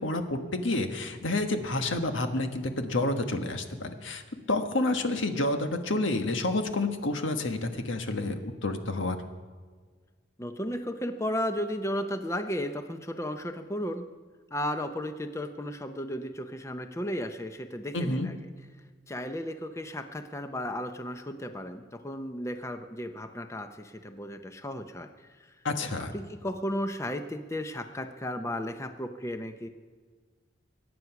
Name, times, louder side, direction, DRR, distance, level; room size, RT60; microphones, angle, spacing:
voice 1, 0.0-4.2 4.5-9.2 17.9-18.3 25.6-26.1, left 2 dB, 85° left, 6 dB, 1.4 m, -29 dB
voice 2, 10.4-14.1 14.5-18.4 19.1-25.1 25.4-25.5 26.1-29.7, equal, 15° left, 7 dB, 0.6 m, -34 dB
23.0 x 9.5 x 5.9 m, 1.5 s
head